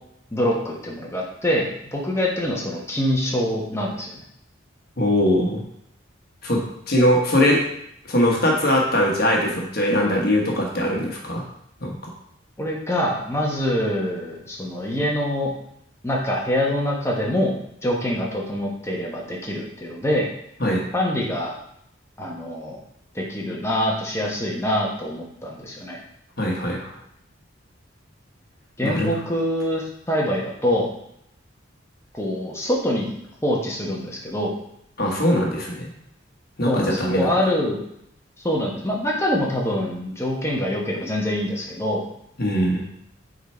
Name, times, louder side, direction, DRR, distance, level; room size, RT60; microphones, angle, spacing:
voice 1, 0.3-4.2 12.6-15.5 16.0-20.3 20.9-21.5 22.2-22.8 23.1-26.0 28.8-30.9 32.1-33.1 33.4-34.6 36.7-37.8 38.4-42.1, left 1 dB, 15° left, -2 dB, 1.2 m, -25 dB
voice 2, 5.0-5.6 6.4-7.6 8.1-11.4 11.8-11.9 20.6-20.8 26.4-26.9 28.8-29.2 35.0-35.9 36.6-37.3 42.4-42.8, left 1 dB, 50° left, -1 dB, 1.3 m, -21 dB
6.7 x 4.0 x 4.4 m, 0.74 s
head